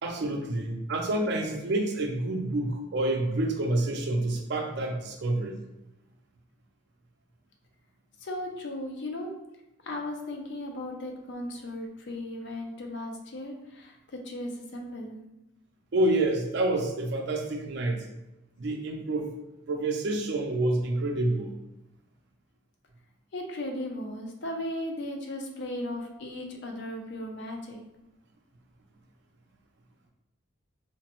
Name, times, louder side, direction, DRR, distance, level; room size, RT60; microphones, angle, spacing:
voice 1, 0.0-5.6 15.9-18.0 18.6-19.3 19.7-21.5, right 2 dB, 55° right, 2 dB, 0.4 m, -28 dB
voice 2, 8.2-9.3 9.8-15.2 23.3-27.8, left 1 dB, 55° left, 2 dB, 0.4 m, -36 dB
3.1 x 2.0 x 2.9 m, 0.93 s
head